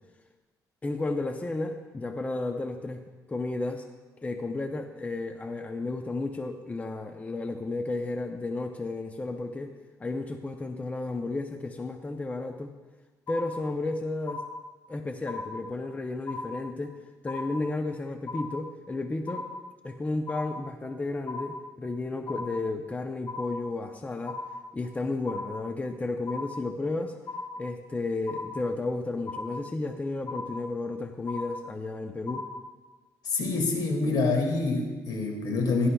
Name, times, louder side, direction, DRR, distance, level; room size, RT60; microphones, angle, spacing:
voice 1, 0.8-3.0 3.3-3.8 4.2-9.7 10.0-12.7 13.3-14.4 14.9-16.9 17.2-19.5 19.8-24.4 24.7-27.1 27.6-32.5, left 2 dB, 20° left, 5 dB, 0.6 m, -33 dB
sound 1, 13.3-13.9 14.3-14.9 15.3-15.9 16.3-16.9 17.3-17.9 18.3-18.9 19.3-19.9 20.3-20.9 21.3-21.9 22.3-22.9 23.3-23.9 24.3-24.9 25.3-25.9 26.3-26.9 27.3-27.9 28.3-28.9 29.3-29.9 30.3-30.9 31.3-31.9 32.3-32.9, left 3 dB, 45° left, 1.8 m, -38 dB
voice 2, 33.2-35.9, left 3 dB, 70° left, 2 dB, 2.1 m, -26 dB
16.5 x 11.5 x 2.3 m, 1.3 s
cardioid pair, 100°, 7 cm